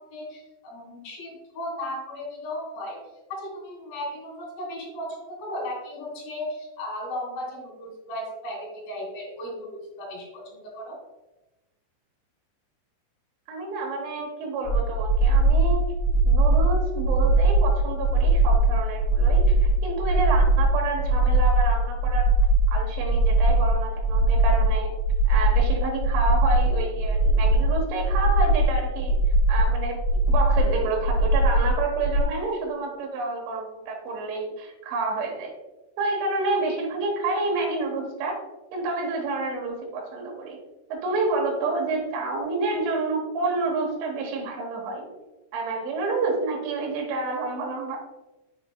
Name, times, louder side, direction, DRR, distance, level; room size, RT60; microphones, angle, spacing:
voice 1, 0.0-3.0 3.3-11.0, left 1 dB, 50° left, -3 dB, 3.2 m, -36 dB
voice 2, 13.5-15.9 16.3-22.3 22.7-24.9 25.3-29.1 29.5-35.5 36.0-38.4 38.7-40.6 40.9-45.1 45.5-48.0, right 3 dB, 85° right, 0 dB, 3.7 m, -29 dB
sound 1, 14.6-32.2, right 1 dB, 75° left, 2.7 m, -21 dB
7.1 x 6.8 x 2.3 m, 1.0 s
omnidirectional pair, 5.3 m